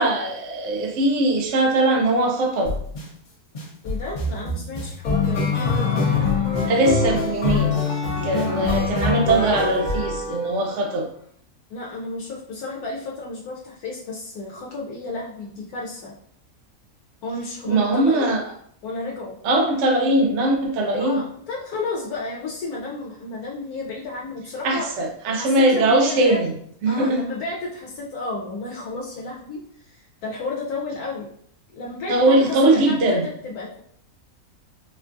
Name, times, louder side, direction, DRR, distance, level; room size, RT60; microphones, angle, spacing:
voice 1, 0.0-2.7 6.6-7.8 8.2-11.1 17.6-18.4 19.4-21.3 24.6-26.5 26.8-27.3 32.1-33.2, right 2 dB, 65° right, 2 dB, 0.7 m, -20 dB
sound 1, 2.6-3.0 3.5-10.7, left 4 dB, 45° left, 0.6 m, -24 dB
voice 2, 3.8-6.2 11.7-16.1 17.2-18.4 18.8-19.4 21.0-24.9 25.3-26.4 26.9-31.3 31.7-33.8, left 3 dB, 75° left, -3 dB, 1.1 m, -32 dB
4.2 x 2.3 x 2.5 m, 0.65 s
omnidirectional pair, 1.6 m